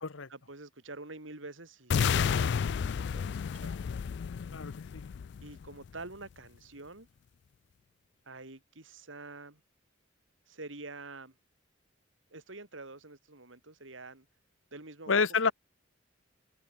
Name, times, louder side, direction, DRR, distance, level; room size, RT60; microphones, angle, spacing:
voice 1, 0.3-3.8 5.4-7.1 8.2-9.6 10.5-11.3 12.3-14.3 14.7-15.5, right 2 dB, 80° right, 3.3 m, -47 dB
sound 1, 1.9-5.9, left 7 dB, 60° left, 0.3 m, -31 dB
voice 2, 4.5-5.0 15.1-15.5, left 5 dB, 85° left, 1.2 m, -29 dB
head